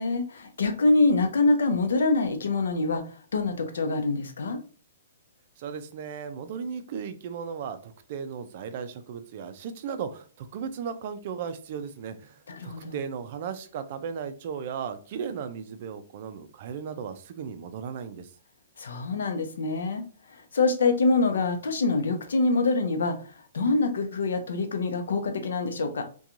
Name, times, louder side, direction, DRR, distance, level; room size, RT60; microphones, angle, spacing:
voice 1, 0.0-4.6 12.5-13.0 18.8-20.0 20.3-26.0, left 3 dB, 85° left, 6 dB, 0.6 m, -25 dB
voice 2, 5.6-18.3, right 7 dB, 45° right, 9 dB, 0.4 m, -36 dB
2.9 x 2.2 x 2.5 m, 0.40 s
hypercardioid pair, 160°, 0 cm